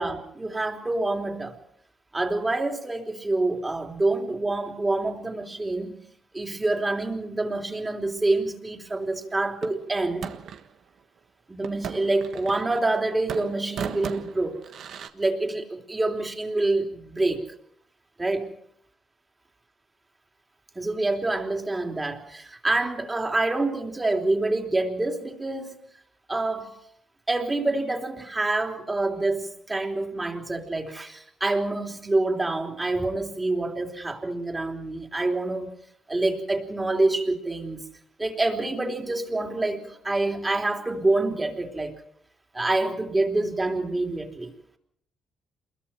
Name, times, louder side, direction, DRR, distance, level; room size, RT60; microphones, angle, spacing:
voice 1, 0.0-1.6 2.1-6.0 6.3-10.3 11.5-14.6 15.1-17.5 18.2-18.5 20.8-25.8 26.3-26.7 27.3-35.7 36.1-37.9 38.2-42.0 42.5-44.5, right 2 dB, 20° right, 3 dB, 3.5 m, -27 dB
sound 1, 9.6-10.7 11.6-13.0 13.3-15.1, right 7 dB, 70° right, 1.4 m, -36 dB
28.0 x 22.0 x 4.5 m, 0.68 s
cardioid pair, 90°, 0 cm